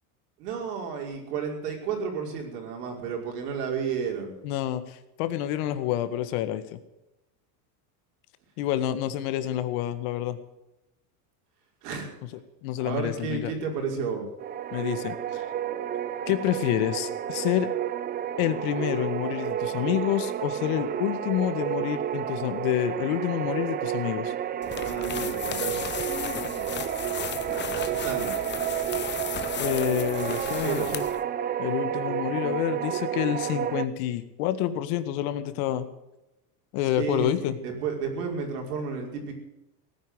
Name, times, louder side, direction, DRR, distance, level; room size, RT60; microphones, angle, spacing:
voice 1, 0.4-4.3 11.8-12.1 12.8-14.3 24.6-25.9 27.5-28.3 30.3-31.0 37.0-37.3 37.6-39.3, right 6 dB, 80° right, 1 dB, 5.6 m, -32 dB
voice 2, 4.4-6.8 8.6-10.4 12.6-13.5 14.7-15.4 16.3-17.7 18.4-24.3 29.6-31.0 31.6-35.8 36.7-37.6, left 12 dB, 65° left, 11 dB, 1.8 m, -28 dB
sound 1, 14.4-33.9, right 10 dB, 20° right, 0.5 m, -31 dB
sound 2, 24.6-31.2, left 9 dB, 25° left, 0.9 m, -35 dB
17.5 x 10.0 x 8.0 m, 0.92 s
supercardioid pair, 130°, 47 cm